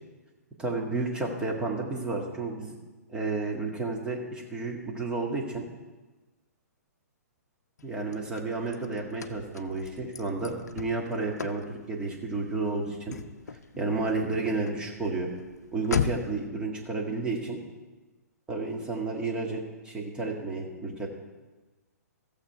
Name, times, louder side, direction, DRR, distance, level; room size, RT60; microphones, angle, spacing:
voice 1, 0.6-2.8 3.1-5.6 7.8-13.2 13.8-15.3 15.7-17.6 18.5-21.1, right 3 dB, 10° right, -1 dB, 1.8 m, -31 dB
Car / Slam, 7.8-16.5, left 6 dB, 70° left, 0.6 m, -38 dB
14.5 x 7.3 x 4.7 m, 1.2 s
figure-of-eight pair, 120°, 9 cm